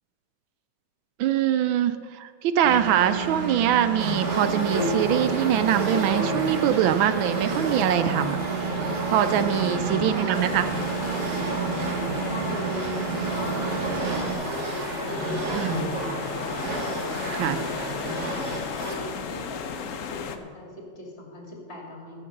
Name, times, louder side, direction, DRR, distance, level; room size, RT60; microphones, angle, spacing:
voice 1, 1.2-8.4 9.1-10.7 15.5-15.9 17.3-17.6, right 10 dB, 75° right, 11 dB, 1.3 m, -23 dB
Engine, 2.6-14.3, right 6 dB, 25° right, 1.6 m, -31 dB
sound 1, 4.0-19.1, right 1 dB, 45° right, 1.9 m, -31 dB
voice 2, 9.9-10.4 12.3-18.1 18.7-19.6 20.1-22.3, left 1 dB, 30° left, 0 dB, 2.7 m, -40 dB
sound 2, 10.3-20.4, left 6 dB, 65° left, 0.8 m, -35 dB
15.5 x 6.6 x 6.6 m, 2.1 s
omnidirectional pair, 2.3 m